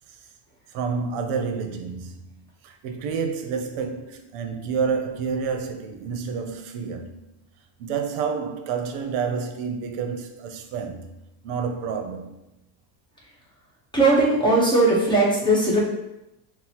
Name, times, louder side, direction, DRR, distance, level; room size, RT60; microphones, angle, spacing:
voice 1, 0.7-7.2 7.8-11.1 11.4-12.4, right 5 dB, 80° right, 0.7 m, -29 dB
voice 2, 13.9-15.8, right 2 dB, 10° left, 0.8 m, -18 dB
6.0 x 2.0 x 2.9 m
cardioid pair, 140°, 48 cm